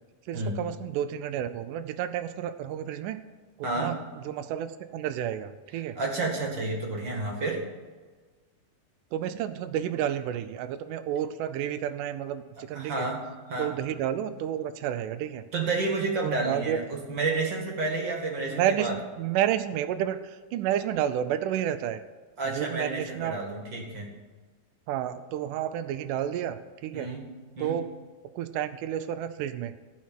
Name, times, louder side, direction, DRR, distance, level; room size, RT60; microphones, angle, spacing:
voice 1, 0.3-3.2 3.8-3.9 4.3-6.0 9.1-13.1 13.6-15.5 16.2-16.8 18.5-22.0 22.5-23.4 24.9-27.1 27.6-27.9 28.4-29.8, right 10 dB, 85° right, 12 dB, 1.8 m, -30 dB
voice 2, 3.6-4.0 6.0-7.6 12.7-13.2 13.5-13.7 15.5-18.9 22.4-24.1 26.9-27.2 27.6-27.8, right 3 dB, 40° right, 0 dB, 1.9 m, -30 dB
15.5 x 5.8 x 7.6 m, 1.4 s
omnidirectional pair, 4.3 m